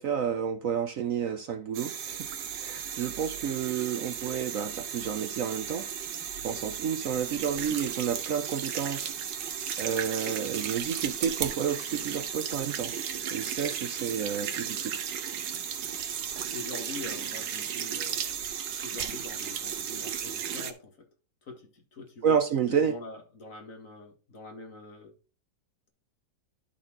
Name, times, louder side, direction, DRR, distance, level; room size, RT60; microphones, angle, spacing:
voice 1, 0.0-2.2 2.6-5.8 6.4-9.1 9.8-12.9 13.3-14.9 22.2-23.0, right 7 dB, 65° right, 0.9 m, -30 dB
sound 1, 1.7-20.7, right 8 dB, 90° right, 1.6 m, -35 dB
voice 2, 16.5-18.4 18.8-20.9 21.5-22.4 22.7-25.1, left 3 dB, 50° left, 2.1 m, -44 dB
11.5 x 4.2 x 3.8 m
omnidirectional pair, 1.9 m